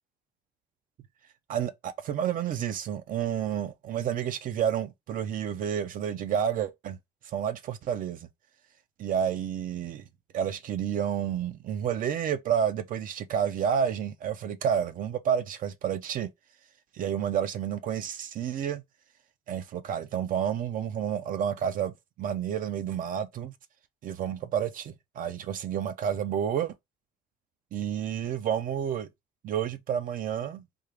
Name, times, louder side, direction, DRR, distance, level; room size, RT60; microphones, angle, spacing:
voice 1, 1.5-7.0 7.3-8.3 9.0-10.0 10.3-16.3 16.9-18.8 19.5-23.5 24.0-26.7 27.7-29.1 29.4-30.6, right 8 dB, 55° right, 0.5 m, -30 dB
3.5 x 2.3 x 3.2 m
cardioid pair, 110°, 17 cm